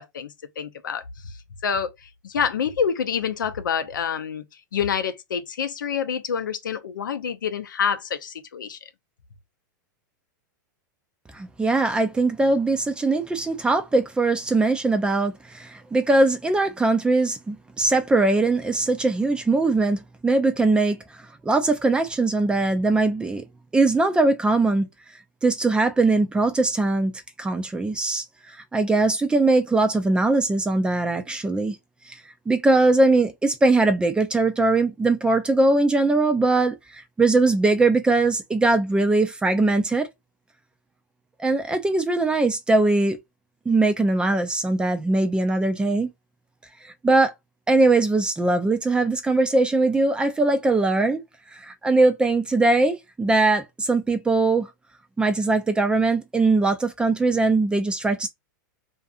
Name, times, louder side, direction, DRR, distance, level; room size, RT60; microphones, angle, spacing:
voice 1, 0.0-1.3 1.6-4.4 4.7-8.8, left 7 dB, 90° left, 0.5 m, -27 dB
voice 2, 11.3-23.4 23.7-24.9 25.4-27.1 27.4-28.2 28.7-31.8 32.1-32.2 32.5-40.1 41.4-43.2 43.7-46.1 46.8-47.3 47.7-51.2 51.5-54.7 55.2-58.3, right 2 dB, 10° right, 0.4 m, -21 dB
2.6 x 2.5 x 2.4 m
hypercardioid pair, 120°, 10 cm